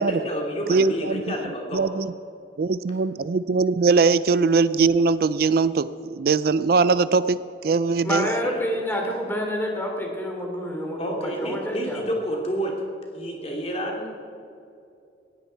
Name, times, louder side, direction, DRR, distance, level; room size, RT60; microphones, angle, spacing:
voice 1, 0.0-1.8 8.2-8.6 11.0-12.8 13.1-14.2, equal, 35° left, 0 dB, 2.8 m, -29 dB
voice 2, 0.7-1.5 1.7-2.1 2.6-8.3, right 4 dB, 55° right, 15 dB, 0.4 m, -21 dB
voice 3, 8.0-12.0, equal, 10° left, 1 dB, 2.8 m, -28 dB
19.0 x 15.5 x 4.6 m, 2.6 s
head